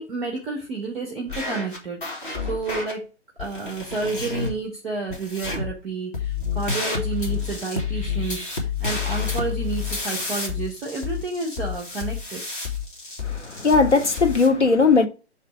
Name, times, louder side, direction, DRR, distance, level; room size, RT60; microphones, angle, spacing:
voice 1, 0.0-3.1 3.4-12.4, right 4 dB, ahead, 0.5 m, -30 dB
sound 1, 1.3-2.9 3.4-4.5 5.1-5.8 6.1-14.5, left 5 dB, 45° left, 2.0 m, -29 dB
voice 2, 13.2-15.1, left 4 dB, 80° left, 1.0 m, -18 dB
6.7 x 3.3 x 4.6 m
figure-of-eight pair, 130°, 34 cm